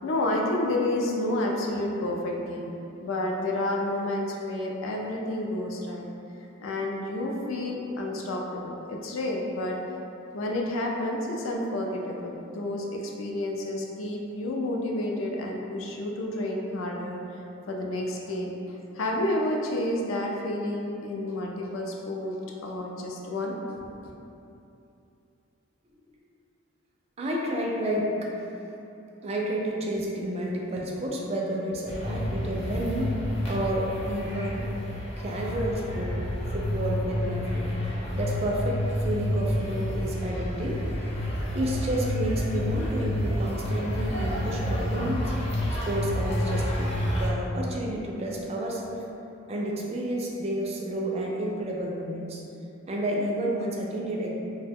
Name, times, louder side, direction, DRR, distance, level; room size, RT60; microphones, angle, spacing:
voice 1, 0.0-2.7 3.0-6.1 6.6-9.8 10.3-17.2 17.7-23.6, left 1 dB, 75° left, 0 dB, 0.4 m, -30 dB
voice 2, 27.2-28.5 29.2-33.1 33.5-34.6 35.2-36.2 36.5-37.7 38.1-40.8 41.5-45.3 45.8-49.1 49.5-52.4 52.9-54.3, right 1 dB, 30° right, -2 dB, 0.3 m, -30 dB
sound 1, 31.9-47.3, equal, 30° left, 0.6 m, -29 dB
2.7 x 2.1 x 3.5 m, 2.8 s
head